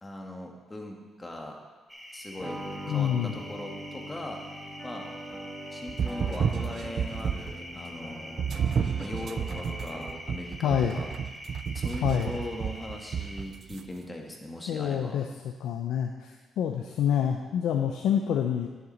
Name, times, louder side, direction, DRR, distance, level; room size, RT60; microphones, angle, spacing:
voice 1, 0.0-1.6 2.1-4.4 4.8-5.1 5.7-8.4 9.0-11.1 11.7-15.2, left 1 dB, 20° left, 1 dB, 1.6 m, -40 dB
sound 1, 1.9-13.4, equal, ahead, 1.3 m, -45 dB
sound 2, 2.4-10.4, equal, 15° right, 1.6 m, -42 dB
voice 2, 2.9-3.4 10.6-11.0 12.0-12.4 14.7-15.3 15.6-18.7, left 9 dB, 80° left, 3 dB, 0.6 m, -27 dB
sound 3, 5.9-7.6 8.4-13.8, right 7 dB, 55° right, 0.4 m, -31 dB
10.5 x 6.8 x 4.4 m, 1.3 s
cardioid pair, 90°, 0 cm